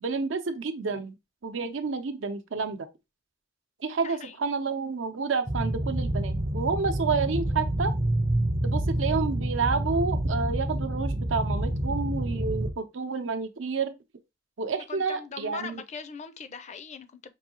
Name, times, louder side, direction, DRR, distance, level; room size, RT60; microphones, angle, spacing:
voice 1, 0.0-2.9 3.8-7.9 8.6-14.0 14.6-15.8, right 4 dB, 90° right, 0.7 m, -30 dB
sound 1, 5.5-12.7, right 1 dB, 25° right, 0.4 m, -28 dB
voice 2, 14.7-17.3, left 5 dB, 35° left, 0.4 m, -40 dB
5.4 x 2.7 x 2.8 m
head